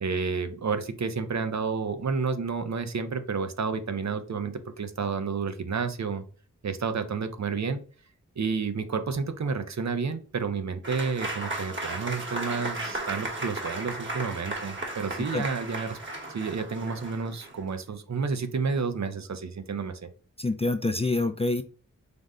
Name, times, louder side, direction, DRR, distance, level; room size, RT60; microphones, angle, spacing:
voice 1, 0.0-6.2 6.6-7.8 8.4-16.0 16.3-20.1, right 5 dB, 60° right, 9 dB, 0.6 m, -30 dB
Applause / Crowd, 10.8-17.7, right 2 dB, 40° right, 1.1 m, -35 dB
voice 2, 20.4-21.6, left 2 dB, 20° left, 9 dB, 0.3 m, -26 dB
5.1 x 2.1 x 3.6 m, 0.40 s
wide cardioid pair, 60°, 31 cm